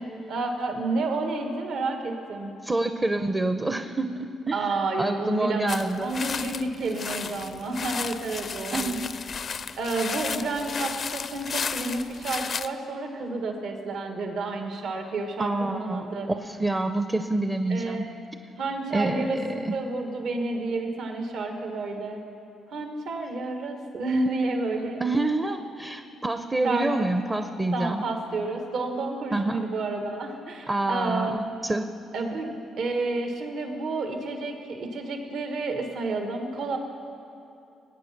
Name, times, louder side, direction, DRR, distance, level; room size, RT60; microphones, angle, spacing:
voice 1, 0.3-2.5 4.5-9.0 9.8-16.3 17.7-18.0 18.6-19.4 19.7-22.2 22.7-25.0 26.6-27.1 27.7-31.5 32.1-36.8, right 3 dB, 70° right, 4 dB, 1.5 m, -30 dB
voice 2, 2.6-6.1 8.7-9.1 15.4-18.0 18.9-19.7 25.0-28.0 29.3-29.7 30.7-31.9, right 2 dB, 20° right, 8 dB, 0.6 m, -27 dB
sound 1, 5.7-12.7, left 6 dB, 50° left, 0.5 m, -34 dB
19.5 x 8.7 x 5.9 m, 2.7 s
cardioid pair, 90°, 0 cm